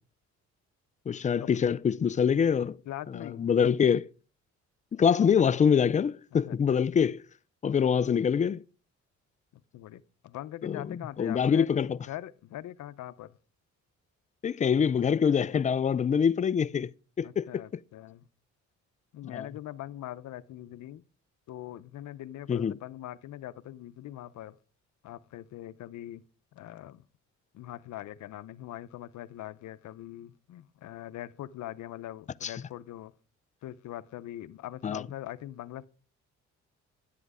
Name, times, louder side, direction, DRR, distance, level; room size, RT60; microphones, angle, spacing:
voice 1, 1.1-2.8 3.4-4.1 4.9-7.2 7.6-8.6 10.6-10.8 11.2-12.0 14.4-16.9 17.2-17.5 19.3-19.5 22.5-22.8 32.4-32.5 34.8-35.0, left 7 dB, 25° left, 0.4 m, -24 dB
voice 2, 2.8-3.5 6.5-6.8 9.5-13.4 17.2-18.3 19.1-21.0 21.5-24.6 25.0-26.2 26.5-27.0 27.5-33.1 33.6-35.9, left 13 dB, 70° left, 0.6 m, -42 dB
10.5 x 7.9 x 4.8 m
cardioid pair, 90°, 30 cm